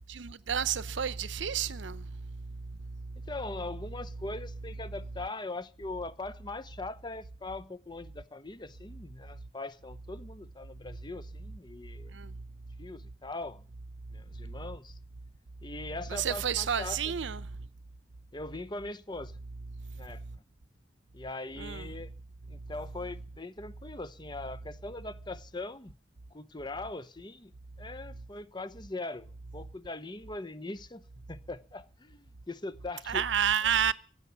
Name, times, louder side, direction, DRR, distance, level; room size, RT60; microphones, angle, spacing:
voice 1, 0.1-2.4 2.8-2.9 12.1-12.3 16.1-17.4 21.6-21.9 33.1-33.9, right 8 dB, 75° right, 0.7 m, -30 dB
voice 2, 3.3-12.1 12.8-13.6 14.1-15.0 15.6-17.1 18.3-19.4 19.9-20.2 21.1-22.1 22.5-26.0 26.3-27.5 27.8-33.2, left 2 dB, 25° left, 0.8 m, -41 dB
16.0 x 9.4 x 7.0 m
head